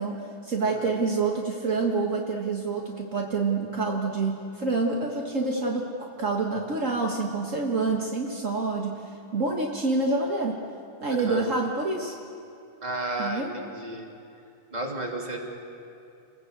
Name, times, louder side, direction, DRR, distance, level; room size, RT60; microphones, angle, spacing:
voice 1, 0.0-9.0 9.3-10.6 11.0-12.1 13.2-13.5, right 3 dB, 40° right, 0 dB, 1.0 m, -27 dB
voice 2, 0.6-0.9 11.2-11.5 12.8-14.1 14.7-15.4, right 1 dB, 15° right, 0 dB, 2.6 m, -33 dB
29.5 x 21.0 x 8.1 m, 2.6 s
omnidirectional pair, 3.9 m